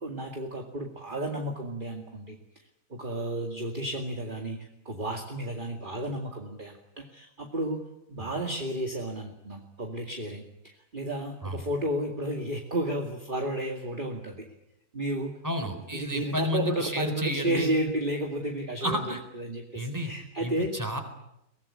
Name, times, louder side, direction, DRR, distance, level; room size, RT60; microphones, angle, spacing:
voice 1, 0.0-2.4 2.9-4.6 4.9-7.8 8.1-14.5 14.9-15.3 15.9-19.0 19.3-20.7, right 1 dB, 35° right, 2 dB, 2.4 m, -32 dB
voice 2, 15.4-17.7 18.8-19.2 19.7-20.1 20.4-21.0, left 1 dB, 10° right, 6 dB, 4.1 m, -31 dB
23.5 x 19.5 x 9.9 m, 0.84 s
omnidirectional pair, 1.6 m